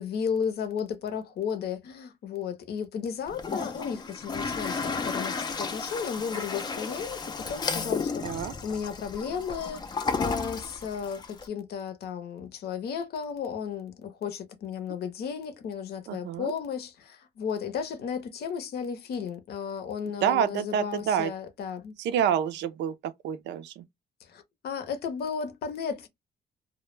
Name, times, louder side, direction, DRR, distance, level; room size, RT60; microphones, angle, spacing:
voice 1, 0.0-22.0 24.3-26.1, left 6 dB, 65° left, 0.7 m, -34 dB
Toilet flush, 3.3-11.5, left 4 dB, 25° left, 0.3 m, -33 dB
voice 2, 8.2-8.5 16.1-16.5 20.2-21.3 22.0-23.8, right 9 dB, 85° right, 0.4 m, -28 dB
2.2 x 2.0 x 3.0 m
cardioid pair, 125°, 18 cm